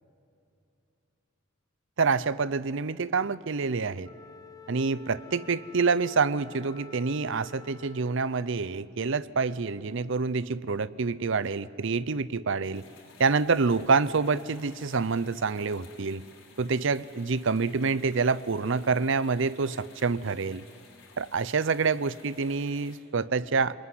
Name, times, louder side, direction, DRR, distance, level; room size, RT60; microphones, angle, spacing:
voice 1, 2.0-4.1 4.7-12.8 13.2-16.2 16.6-20.6 21.2-23.7, right 4 dB, 65° right, 18 dB, 0.7 m, -27 dB
Wind instrument woodwind instrument, 4.0-8.4, left 5 dB, 20° left, 0.9 m, -49 dB
sound 1, 12.7-23.0, left 4 dB, 75° left, 5.1 m, -55 dB
29.0 x 20.5 x 9.7 m, 2.5 s
head